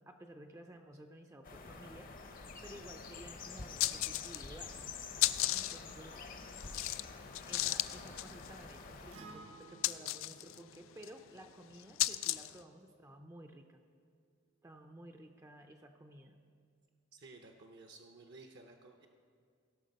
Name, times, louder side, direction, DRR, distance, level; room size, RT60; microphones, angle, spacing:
voice 1, 0.0-4.8 5.5-6.2 7.5-13.8 14.6-16.4, right 1 dB, 15° right, 4 dB, 0.4 m, -54 dB
sound 1, 1.4-9.2, left 4 dB, 45° left, 0.7 m, -48 dB
sound 2, 2.8-2.9 3.2-3.3 3.6-4.6 4.9-12.6, left 16 dB, 80° left, 0.3 m, -36 dB
Acoustic guitar, 9.1-13.3, right 4 dB, 80° right, 1.0 m, -58 dB
voice 2, 17.1-19.1, right 3 dB, 55° right, 4 dB, 0.6 m, -55 dB
16.0 x 5.9 x 5.2 m, 2.2 s
head